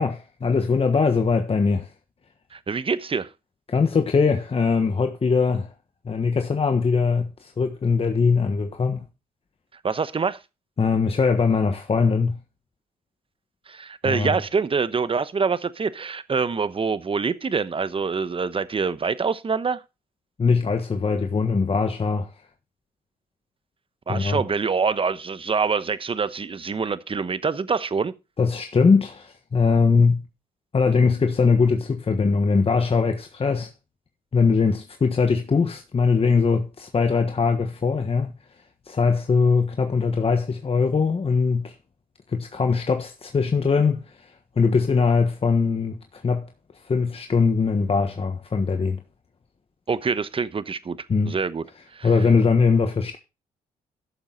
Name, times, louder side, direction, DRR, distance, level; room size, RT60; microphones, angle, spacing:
voice 1, 0.0-1.9 3.7-5.7 6.0-9.1 10.8-12.4 14.0-14.4 20.4-22.3 24.1-24.4 28.4-30.3 30.7-33.7 34.3-38.3 38.9-41.7 42.3-44.3 44.6-46.5 46.8-49.0 51.1-51.4 52.0-53.2, left 5 dB, 40° left, 1.4 m, -21 dB
voice 2, 2.5-3.3 9.8-10.4 13.7-19.8 24.1-28.1 49.9-51.0 51.3-51.6 51.9-52.1, right 5 dB, 35° right, 1.0 m, -25 dB
12.5 x 7.1 x 4.0 m
supercardioid pair, 55°, 16 cm